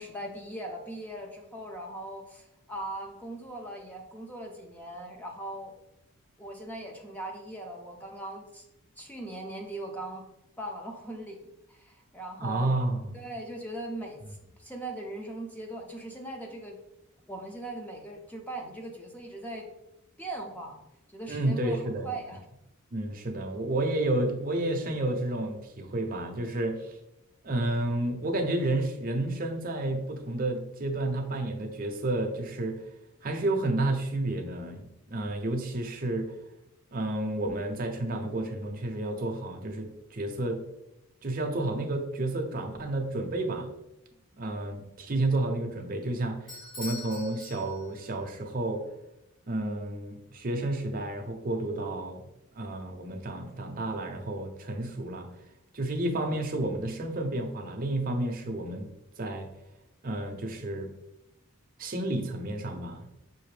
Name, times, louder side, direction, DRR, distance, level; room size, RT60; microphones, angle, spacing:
voice 1, 0.0-5.8 6.4-8.6 9.0-10.2 10.6-12.8 13.1-16.8 17.3-19.7 20.2-20.8 21.1-21.8 22.0-22.4, right 1 dB, 5° left, 1 dB, 0.5 m, -40 dB
voice 2, 12.4-13.1 21.3-22.1 22.9-27.0 27.4-32.8 33.2-36.4 36.9-40.6 41.2-43.7 44.4-48.8 49.5-52.2 52.5-55.3 55.7-58.9 59.2-59.5 60.0-60.9 61.8-63.2, right 2 dB, 40° right, 3 dB, 0.5 m, -31 dB
Bell / Doorbell, 46.5-48.2, left 3 dB, 60° left, 1.5 m, -43 dB
5.7 x 2.6 x 3.2 m, 0.87 s
head